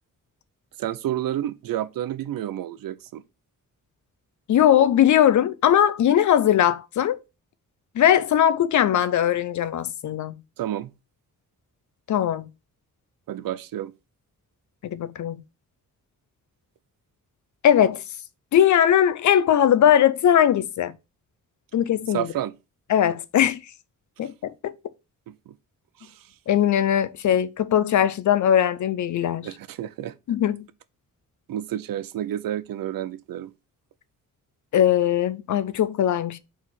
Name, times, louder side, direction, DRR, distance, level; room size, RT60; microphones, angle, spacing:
voice 1, 0.8-3.2 10.6-10.9 13.3-13.9 22.1-22.5 25.3-25.6 26.0-26.3 29.4-30.1 31.5-33.5, right 11 dB, 85° right, 0.7 m, -30 dB
voice 2, 4.5-7.2 7.9-10.3 12.1-12.5 14.8-15.4 17.6-18.0 18.5-20.9 21.7-22.3 22.9-23.6 24.2-24.7 26.5-29.5 30.3-30.7 34.7-36.4, left 10 dB, 60° left, 0.6 m, -20 dB
4.8 x 4.1 x 5.8 m
wide cardioid pair, 150°, 33 cm